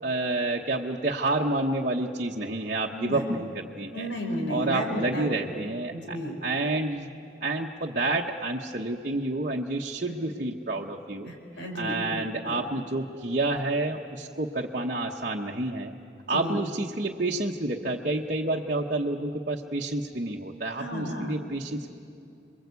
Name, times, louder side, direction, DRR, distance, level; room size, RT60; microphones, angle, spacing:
voice 1, 0.0-4.1 4.5-7.1 7.4-11.3 11.7-16.0 16.3-21.9, right 2 dB, 45° right, -2 dB, 1.0 m, -29 dB
voice 2, 2.9-3.2 3.9-5.3 5.9-6.5 10.1-10.2 11.2-12.7 16.3-16.6 20.8-21.3, equal, 75° left, 1 dB, 5.0 m, -33 dB
27.5 x 22.0 x 8.3 m, 2.5 s
head